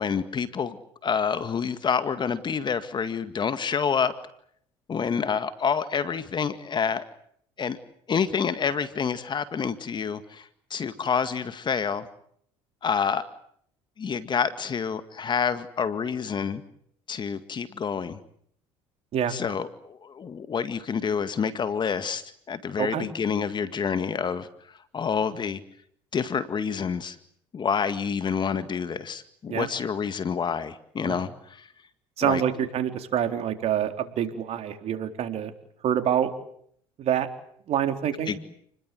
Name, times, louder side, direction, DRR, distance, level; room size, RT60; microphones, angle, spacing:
voice 1, 0.0-4.1 4.9-7.1 7.6-7.8 8.1-12.1 12.8-13.3 14.0-16.6 17.1-18.2 19.3-24.5 24.9-25.6 26.1-27.2 27.5-31.7 32.2-32.4 38.3-38.4, left 6 dB, 40° left, 12 dB, 2.0 m, -28 dB
voice 2, 22.8-23.1 29.5-29.7 31.1-31.2 32.2-35.5 35.8-36.3 37.0-37.3 37.7-38.4, right 9 dB, 55° right, 7 dB, 4.0 m, -26 dB
29.5 x 21.0 x 7.8 m, 0.67 s
supercardioid pair, 80°, 12 cm